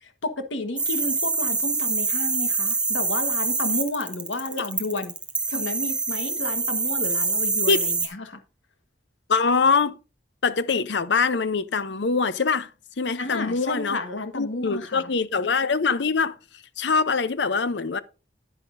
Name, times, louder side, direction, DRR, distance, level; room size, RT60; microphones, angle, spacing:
voice 1, 0.0-5.1 5.5-8.4 13.2-15.1, left 2 dB, 85° left, 1.4 m, -31 dB
sound 1, 0.8-8.1, right 4 dB, 5° right, 0.9 m, -25 dB
voice 2, 9.3-9.9 10.4-12.7 13.0-14.0 14.3-16.4 16.8-18.0, left 4 dB, 70° left, 0.7 m, -23 dB
9.8 x 9.8 x 2.6 m
head